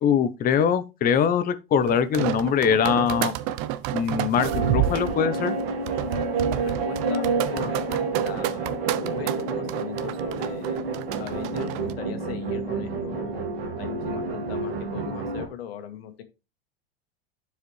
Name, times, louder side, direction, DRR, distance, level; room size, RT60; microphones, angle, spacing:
voice 1, 0.0-3.3 3.9-5.6, left 7 dB, 30° left, 0.7 m, -22 dB
sound 1, 1.9-11.9, right 13 dB, 55° right, 0.7 m, -30 dB
sound 2, 4.4-15.5, right 3 dB, 90° right, 2.0 m, -29 dB
voice 2, 6.6-7.3 7.5-10.8 11.2-13.4 13.8-16.2, left 9 dB, 80° left, 1.6 m, -39 dB
11.0 x 4.9 x 3.1 m
supercardioid pair, 120°, 30 cm